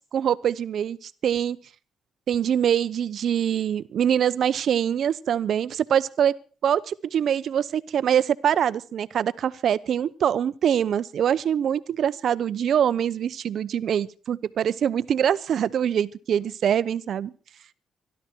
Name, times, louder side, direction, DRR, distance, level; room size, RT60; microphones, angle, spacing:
voice 1, 0.1-1.6 2.3-6.3 6.6-17.3, right 9 dB, 65° right, 16 dB, 0.7 m, -24 dB
23.5 x 12.0 x 4.5 m, 0.38 s
cardioid pair, 90°, 0 cm